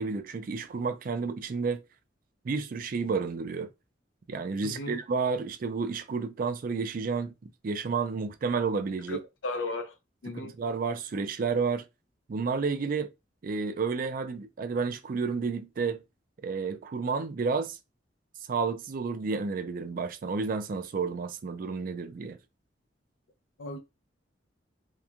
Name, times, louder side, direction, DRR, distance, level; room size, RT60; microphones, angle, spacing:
voice 1, 0.0-1.8 2.4-3.7 4.3-7.3 7.6-9.2 10.3-11.8 12.3-13.1 13.4-16.0 16.4-17.8 18.5-22.4, right 4 dB, 50° right, 0.4 m, -31 dB
voice 2, 4.6-5.0 9.1-9.9 10.2-10.5 23.6-23.8, left 2 dB, 85° left, 0.6 m, -35 dB
2.9 x 2.2 x 2.4 m
head